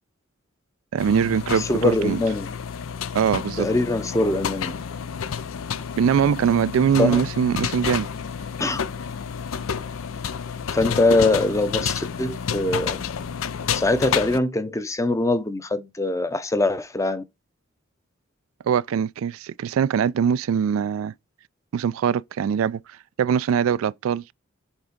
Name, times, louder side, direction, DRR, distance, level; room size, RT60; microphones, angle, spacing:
voice 1, 0.9-2.2 3.1-3.7 6.0-8.1 18.7-21.1 21.7-22.8 23.2-24.2, right 7 dB, 80° right, 0.3 m, -22 dB
sound 1, 1.0-14.4, left 7 dB, 80° left, 0.5 m, -30 dB
voice 2, 1.6-2.5 3.6-4.7 7.0-7.2 8.6-8.8 10.7-13.1 13.7-17.2, left 2 dB, 15° left, 0.6 m, -23 dB
7.2 x 3.6 x 5.1 m
head